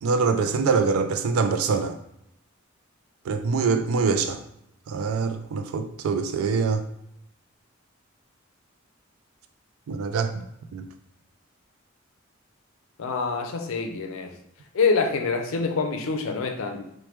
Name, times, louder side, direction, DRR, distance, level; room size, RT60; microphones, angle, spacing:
voice 1, 0.0-2.0 3.3-4.4 4.9-6.8 9.9-10.4 10.7-10.9, right 5 dB, 85° right, 8 dB, 0.3 m, -24 dB
voice 2, 13.0-14.4 14.7-16.8, left 4 dB, 70° left, 5 dB, 0.4 m, -26 dB
3.1 x 2.2 x 3.0 m, 0.77 s
head